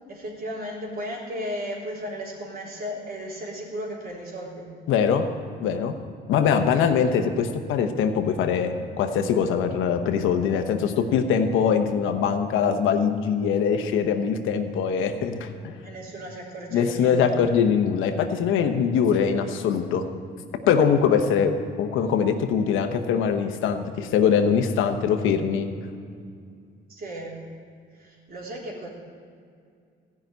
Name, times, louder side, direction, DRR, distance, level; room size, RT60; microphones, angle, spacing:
voice 1, 0.1-4.7 6.5-6.9 15.8-17.3 26.9-27.4 27.9-28.9, equal, 50° right, -3 dB, 3.5 m, -35 dB
voice 2, 4.9-5.3 5.6-6.0 6.3-15.7 16.7-20.0 20.7-21.5 21.8-25.7, left 7 dB, 90° left, 7 dB, 1.0 m, -22 dB
15.0 x 6.0 x 9.1 m, 2.3 s
cardioid pair, 90°, 20 cm